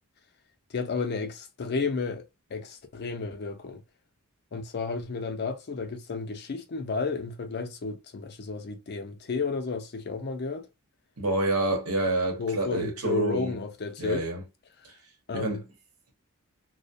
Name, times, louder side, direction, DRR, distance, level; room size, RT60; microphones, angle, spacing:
voice 1, 0.7-3.8 4.5-10.7 12.4-14.3 15.3-15.6, left 4 dB, 50° left, 0.5 m, -32 dB
voice 2, 11.2-13.5 14.0-14.4 15.3-15.6, right 2 dB, 75° right, 0.9 m, -28 dB
2.3 x 2.1 x 2.6 m
head